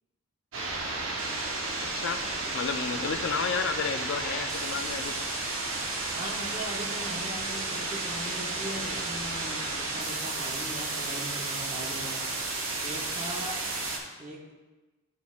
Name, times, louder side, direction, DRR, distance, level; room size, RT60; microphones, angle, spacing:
sound 1, 0.5-14.0, right 2 dB, 70° right, 0.9 m, -32 dB
voice 1, 1.8-5.3, left 6 dB, 60° left, 8 dB, 0.4 m, -32 dB
voice 2, 6.1-12.2 12.8-13.6 14.2-14.6, right 1 dB, 35° right, -1 dB, 0.8 m, -39 dB
10.0 x 4.2 x 2.4 m, 1.2 s
head